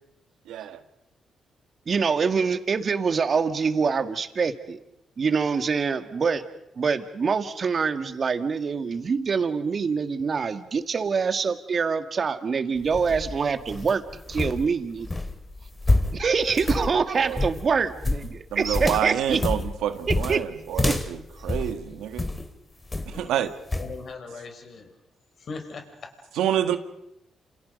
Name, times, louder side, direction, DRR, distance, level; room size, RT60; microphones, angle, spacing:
voice 1, 0.5-0.8 16.8-16.9 17.1-17.4 18.5-22.3 23.1-23.5 26.4-26.8, right 10 dB, 90° right, 8 dB, 1.7 m, -28 dB
voice 2, 1.9-4.8 5.2-6.4 6.8-14.0 14.3-15.1 16.1-19.4 20.1-20.4 20.9-21.0, right 5 dB, 50° right, 8 dB, 2.1 m, -25 dB
sound 1, 12.8-22.5 22.9-23.3 23.7-23.9, left 2 dB, 25° left, 2.4 m, -28 dB
voice 3, 23.7-24.9 25.4-26.3, left 4 dB, 60° left, 6 dB, 5.2 m, -39 dB
29.0 x 28.0 x 5.4 m, 0.81 s
cardioid pair, 70°, 0 cm